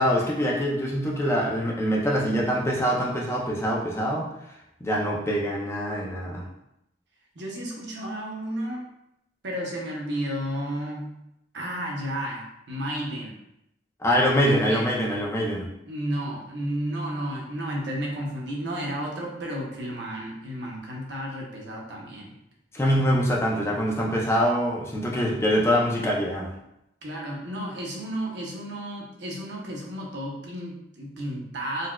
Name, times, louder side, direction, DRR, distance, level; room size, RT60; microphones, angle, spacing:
voice 1, 0.0-4.3 4.8-6.4 14.0-15.7 22.7-26.5, equal, 15° left, -3 dB, 0.4 m, -24 dB
voice 2, 7.3-8.9 9.4-11.1 11.5-13.4 14.4-14.8 15.9-22.4 27.0-31.9, right 1 dB, 70° right, -2 dB, 0.7 m, -32 dB
4.0 x 2.3 x 2.2 m, 0.82 s
head